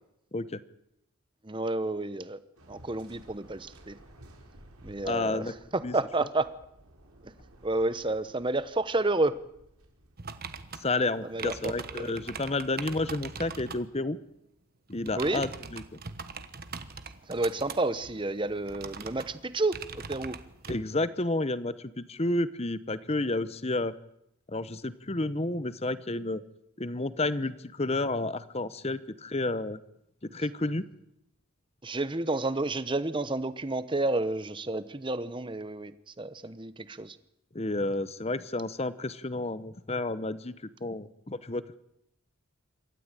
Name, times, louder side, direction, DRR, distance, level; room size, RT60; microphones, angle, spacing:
voice 1, 1.4-2.4 2.7-4.0 4.8-6.5 7.2-7.3 7.6-9.4 11.2-12.1 15.1-15.4 17.3-20.4 31.8-35.9 36.2-37.2, right 2 dB, 20° right, 14 dB, 0.9 m, -30 dB
Waves surf, 2.6-10.2, right 1 dB, 85° right, 4.8 m, -55 dB
voice 2, 5.0-5.5 5.8-5.9 10.8-14.2 14.9-15.8 20.7-23.9 24.5-26.4 26.8-29.8 30.3-30.8 37.5-40.5 40.8-41.7, left 2 dB, 30° left, 15 dB, 0.9 m, -31 dB
sound 1, 10.2-13.9 14.9-20.8, right 5 dB, 45° right, 1.2 m, -42 dB
27.0 x 13.5 x 9.0 m, 0.80 s
head